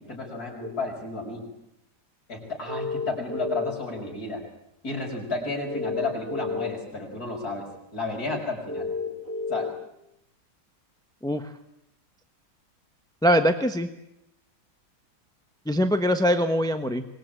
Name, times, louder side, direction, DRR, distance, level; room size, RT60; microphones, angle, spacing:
voice 1, 0.0-1.4 2.3-4.4 4.8-8.9 9.5-9.7, left 2 dB, 45° left, 0 dB, 6.7 m, -32 dB
sound 1, 0.6-0.7 2.7-3.9 5.7-6.7 8.7-9.7, left 4 dB, 40° right, 7.6 m, -31 dB
voice 2, 13.2-13.9 15.7-17.0, equal, 5° left, 8 dB, 0.7 m, -22 dB
25.0 x 21.0 x 9.2 m, 0.82 s
omnidirectional pair, 2.3 m